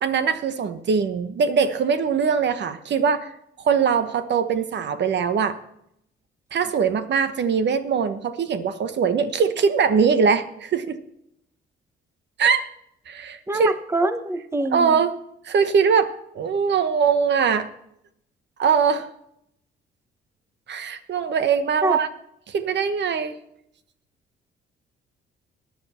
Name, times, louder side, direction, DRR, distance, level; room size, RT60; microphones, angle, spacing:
voice 1, 0.0-3.3 3.6-5.6 6.5-11.0 12.4-12.6 13.1-13.7 14.7-15.1 15.4-17.7 18.6-19.1 20.7-22.1 22.5-23.4, right 6 dB, 60° right, 11 dB, 1.1 m, -22 dB
voice 2, 13.5-15.0 21.8-22.0, right 2 dB, 15° right, 10 dB, 1.0 m, -24 dB
14.0 x 10.5 x 4.4 m, 0.75 s
cardioid pair, 90°, 20 cm